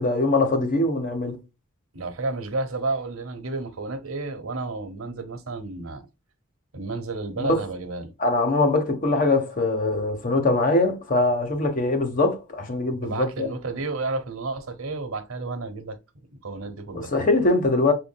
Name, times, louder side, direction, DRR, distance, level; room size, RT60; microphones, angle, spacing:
voice 1, 0.0-1.4 7.4-7.6 8.2-13.5 16.9-17.9, left 2 dB, 40° left, 1.1 m, -22 dB
voice 2, 1.9-6.1 6.7-8.1 13.0-16.0 16.4-17.1, right 3 dB, 85° right, 1.0 m, -31 dB
6.3 x 2.6 x 2.2 m
head